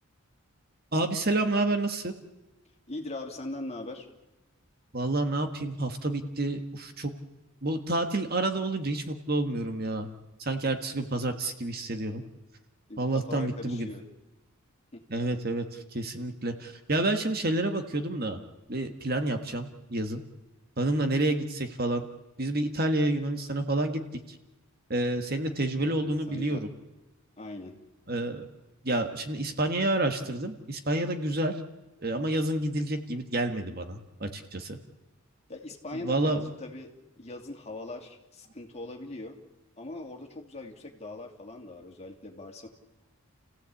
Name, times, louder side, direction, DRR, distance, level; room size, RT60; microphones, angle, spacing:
voice 1, 0.9-2.1 4.9-7.1 7.6-10.1 10.4-12.2 13.0-13.9 15.1-18.4 18.7-20.2 20.8-22.1 22.4-24.0 24.3-24.4 24.9-26.7 28.1-28.5 28.8-31.6 32.0-34.8 35.9-36.4, right 2 dB, 45° right, 6 dB, 1.6 m, -29 dB
voice 2, 2.9-4.1 12.9-14.0 14.9-15.0 25.8-26.6 27.4-27.8 35.5-39.4 39.8-42.7, left 2 dB, 30° left, 2 dB, 2.6 m, -41 dB
30.0 x 16.0 x 8.4 m, 1.0 s
head